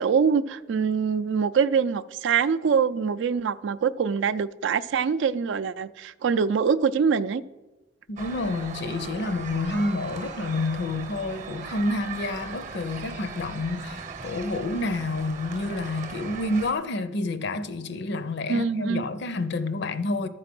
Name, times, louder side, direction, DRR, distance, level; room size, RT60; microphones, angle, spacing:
voice 1, 0.0-7.4 18.5-19.1, right 6 dB, 70° right, 0.4 m, -24 dB
voice 2, 8.1-20.3, left 2 dB, 65° left, 0.6 m, -29 dB
sound 1, 8.2-16.7, right 5 dB, 40° right, 0.8 m, -39 dB
12.5 x 4.8 x 5.9 m
head